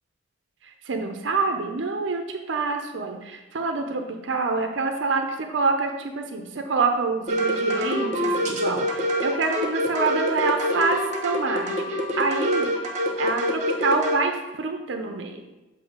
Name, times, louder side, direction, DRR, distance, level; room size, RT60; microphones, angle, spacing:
voice 1, 0.6-2.2 2.5-15.4, right 4 dB, 85° right, 4 dB, 0.6 m, -26 dB
sound 1, 7.3-14.2, equal, 40° right, 0.8 m, -25 dB
7.1 x 2.7 x 4.9 m, 1.1 s
head